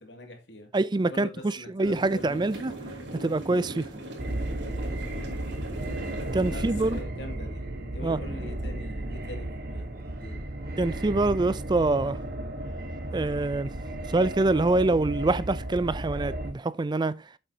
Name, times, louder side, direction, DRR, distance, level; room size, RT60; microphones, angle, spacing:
voice 1, 0.0-2.4 5.0-5.3 6.5-7.6 7.9-9.9 10.1-10.4, left 1 dB, 70° left, 2.4 m, -43 dB
voice 2, 0.7-2.7 3.2-3.9 6.3-7.0 8.0-8.2 10.8-12.2 13.1-13.7 14.1-17.1, right 2 dB, 25° right, 0.4 m, -25 dB
sound 1, 1.8-7.0, right 1 dB, 70° right, 3.1 m, -39 dB
sound 2, 4.2-16.5, right 1 dB, 55° right, 1.4 m, -34 dB
8.1 x 7.7 x 2.8 m
head